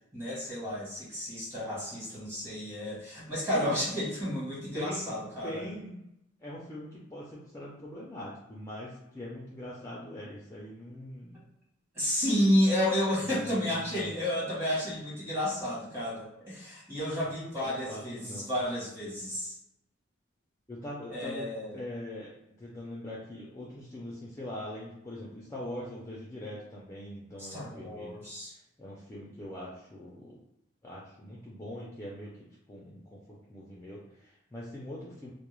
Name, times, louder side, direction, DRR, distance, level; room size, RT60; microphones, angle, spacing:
voice 1, 0.1-5.7 11.3-11.4 11.9-18.2 18.5-19.5 21.1-21.8 27.4-28.5, equal, 15° right, -7 dB, 1.0 m, -31 dB
voice 2, 3.5-3.8 4.7-5.0 5.4-6.0 6.4-11.4 13.2-14.1 17.6-18.5 20.7-22.3 22.6-28.1 28.8-30.4 30.8-35.3, left 1 dB, 15° left, -5 dB, 0.4 m, -42 dB
2.3 x 2.0 x 3.0 m, 0.83 s
head